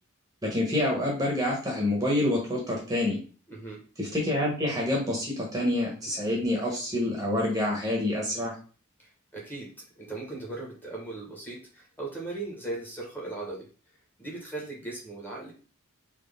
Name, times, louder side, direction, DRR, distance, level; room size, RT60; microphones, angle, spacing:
voice 1, 0.4-3.2 4.0-8.5, left 1 dB, 15° right, -2 dB, 1.1 m, -27 dB
voice 2, 3.5-3.8 9.0-9.7 9.9-13.7 14.2-15.5, right 2 dB, 10° left, -2 dB, 1.2 m, -38 dB
4.2 x 3.0 x 3.5 m, 0.38 s
head